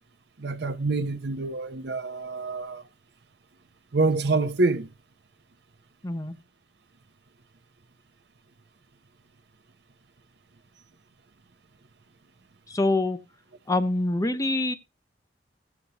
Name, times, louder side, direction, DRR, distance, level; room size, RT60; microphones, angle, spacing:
voice 1, 0.4-2.8 3.9-4.9, right 3 dB, 65° right, 0.8 m, -26 dB
voice 2, 6.0-6.3 12.7-13.2 13.7-14.7, left 2 dB, 20° left, 0.7 m, -25 dB
16.0 x 7.1 x 2.9 m
head